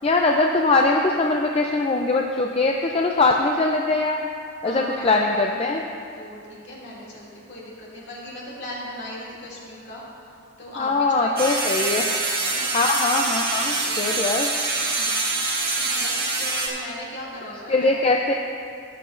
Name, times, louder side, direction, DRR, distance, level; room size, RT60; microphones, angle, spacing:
voice 1, 0.0-4.3 4.6-5.8 10.8-12.0 12.7-14.5 17.7-18.4, left 3 dB, 25° left, 1 dB, 0.4 m, -21 dB
voice 2, 4.6-5.7 6.1-12.0 12.4-12.7 13.6-14.4 14.8-15.1 15.7-17.9, equal, 50° left, -6 dB, 2.5 m, -38 dB
sound 1, 11.4-16.7, right 3 dB, 45° right, 1.6 m, -25 dB
17.0 x 7.8 x 2.5 m, 2.5 s
head